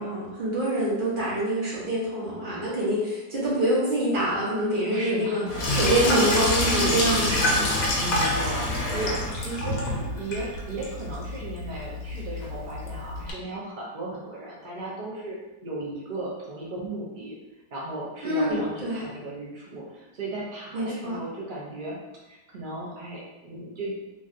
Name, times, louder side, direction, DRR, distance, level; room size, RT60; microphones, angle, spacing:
voice 1, 0.0-5.4 5.7-7.8 18.2-19.0 20.7-21.2, right 1 dB, 40° right, -7 dB, 1.0 m, -26 dB
voice 2, 4.9-5.6 6.0-6.3 8.0-15.4 15.6-17.4 17.7-22.0 22.3-24.0, right 2 dB, 75° right, -5 dB, 0.4 m, -36 dB
Sink (filling or washing), 5.5-13.3, left 1 dB, 70° left, 1.1 m, -27 dB
3.1 x 2.6 x 2.4 m, 1.0 s
omnidirectional pair, 1.6 m